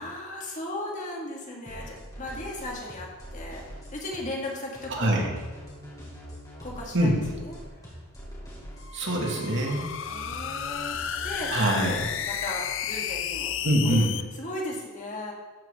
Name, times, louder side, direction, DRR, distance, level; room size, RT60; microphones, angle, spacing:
voice 1, 0.0-5.2 6.6-7.1 7.4-7.5 10.1-11.5 11.8-13.5 13.8-14.0 14.3-15.3, left 1 dB, 40° left, -2 dB, 2.4 m, -36 dB
sound 1, 1.7-11.5, equal, 20° left, 4.3 m, -43 dB
voice 2, 4.9-5.3 6.9-7.2 8.9-9.9 11.5-12.1 13.6-14.1, right 1 dB, 60° right, -1 dB, 2.5 m, -24 dB
sound 2, 8.8-14.2, left 9 dB, 65° left, 0.6 m, -32 dB
14.0 x 11.0 x 3.9 m, 1.3 s
head